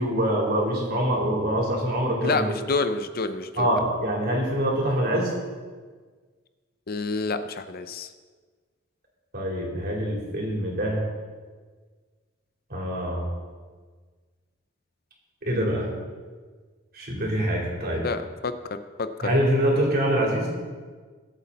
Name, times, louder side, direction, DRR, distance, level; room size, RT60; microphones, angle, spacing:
voice 1, 0.0-2.5 3.6-5.3 9.3-11.0 12.7-13.3 15.4-15.9 16.9-18.0 19.2-20.5, equal, 45° right, -2 dB, 3.8 m, -25 dB
voice 2, 2.2-3.7 6.9-8.1 17.8-18.5 19.0-19.3, left 3 dB, 45° left, 10 dB, 0.6 m, -28 dB
22.5 x 8.3 x 4.2 m, 1.5 s
head